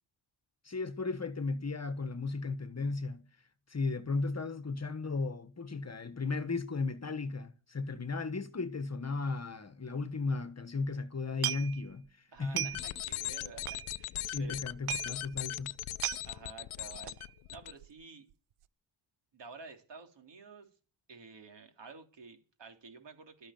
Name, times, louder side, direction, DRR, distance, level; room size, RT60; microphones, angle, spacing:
voice 1, 0.6-3.3 3.7-12.7 14.2-15.8, left 3 dB, 30° left, 1.4 m, -35 dB
sound 1, 11.4-12.1 12.4-13.0 13.3-13.4 13.6-14.3 14.6-14.7 14.9-15.1 15.5-15.6 15.8-16.3 17.1-17.3 17.7-18.0 18.3-18.4, right 15 dB, 85° right, 0.7 m, -36 dB
voice 2, 12.3-14.6 16.2-17.2 17.5-18.3 19.3-20.7 21.1-23.5, right 4 dB, 55° right, 3.6 m, -51 dB
sound 2, 12.6-17.7, left 14 dB, 75° left, 0.8 m, -39 dB
13.0 x 10.0 x 9.2 m
cardioid pair, 80°, 49 cm